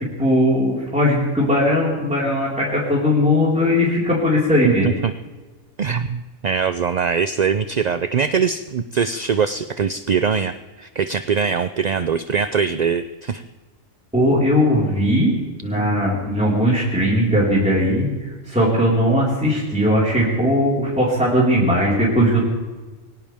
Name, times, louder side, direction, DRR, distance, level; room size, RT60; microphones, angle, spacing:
voice 1, 0.2-4.9 14.1-18.1 18.5-22.4, equal, 5° right, -7 dB, 4.6 m, -18 dB
voice 2, 5.8-13.4, right 6 dB, 50° right, 11 dB, 0.5 m, -22 dB
22.5 x 18.0 x 3.5 m, 1.2 s
omnidirectional pair, 1.3 m